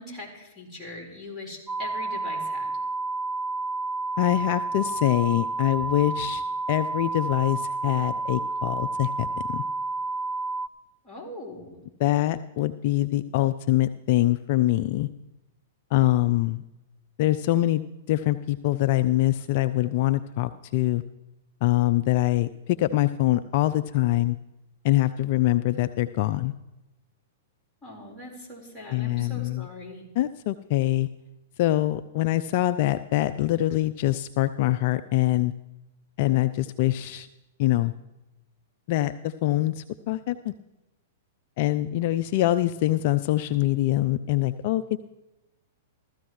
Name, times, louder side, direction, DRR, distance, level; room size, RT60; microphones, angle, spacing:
voice 1, 0.0-2.7 11.0-11.8 27.8-30.0, left 2 dB, 10° left, -5 dB, 4.4 m, -41 dB
sound 1, 1.7-10.7, right 3 dB, 20° right, 0.4 m, -30 dB
voice 2, 4.2-6.4 6.7-9.6 12.0-15.1 15.9-16.6 17.2-17.8 18.1-21.0 21.6-24.4 24.8-26.5 28.9-29.7 30.2-31.1 31.6-35.5 36.2-37.3 37.6-37.9 38.9-40.5 41.6-45.0, left 15 dB, 50° left, 12 dB, 0.3 m, -24 dB
15.5 x 13.5 x 3.1 m, 0.97 s
hypercardioid pair, 110°, 0 cm